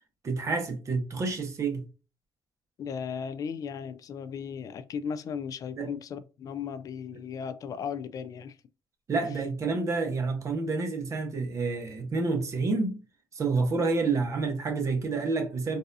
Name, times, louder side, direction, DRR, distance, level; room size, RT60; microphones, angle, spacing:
voice 1, 0.2-1.8 5.8-5.9 9.1-13.0 13.3-15.8, right 3 dB, 50° right, 1.1 m, -28 dB
voice 2, 2.8-8.6, left 7 dB, 60° left, 0.4 m, -36 dB
4.0 x 2.6 x 2.6 m
supercardioid pair, 70°, 7 cm